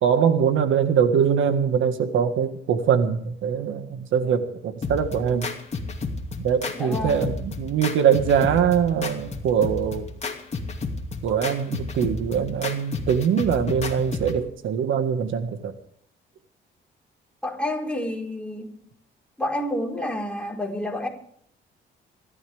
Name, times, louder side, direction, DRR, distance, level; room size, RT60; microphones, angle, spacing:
voice 1, 0.0-5.5 6.4-10.1 11.2-15.7, right 7 dB, 80° right, 1.7 m, -22 dB
sound 1, 4.8-14.4, left 4 dB, 35° left, 2.5 m, -32 dB
voice 2, 6.7-7.3 17.4-18.7 19.4-21.1, left 1 dB, 5° left, 4.2 m, -29 dB
26.0 x 12.5 x 3.5 m
cardioid pair, 90°, 20 cm